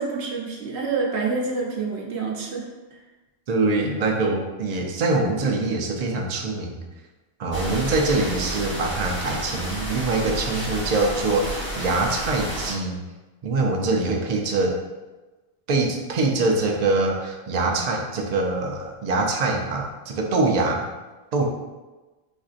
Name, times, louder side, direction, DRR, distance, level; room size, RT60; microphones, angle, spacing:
voice 1, 0.0-3.0, right 4 dB, 75° right, -1 dB, 0.9 m, -28 dB
voice 2, 3.5-6.8 7.4-13.0 13.4-14.8 15.7-20.8 21.3-21.4, right 3 dB, 55° right, 1 dB, 0.5 m, -24 dB
sound 1, 7.5-12.7, right 1 dB, 10° right, 1.1 m, -31 dB
4.3 x 2.5 x 2.4 m, 1.2 s
omnidirectional pair, 1.1 m